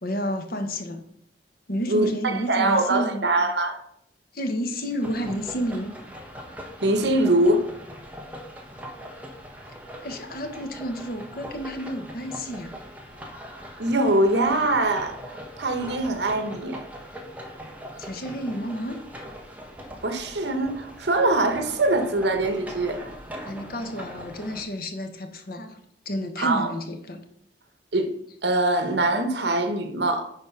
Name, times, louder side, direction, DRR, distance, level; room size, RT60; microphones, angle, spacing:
voice 1, 0.0-1.0 1.7-3.3 4.3-5.9 10.0-12.8 18.0-19.0 23.5-25.8 26.0-27.2, equal, 55° left, 1.2 m, -30 dB
voice 2, 1.9-3.8 6.8-7.7 13.8-16.8 20.0-23.1 26.4-26.7 27.9-28.1 28.4-30.3, right 2 dB, 70° right, 1.1 m, -23 dB
sound 1, 5.0-24.6, equal, 10° right, 1.3 m, -41 dB
9.9 x 4.1 x 5.8 m
head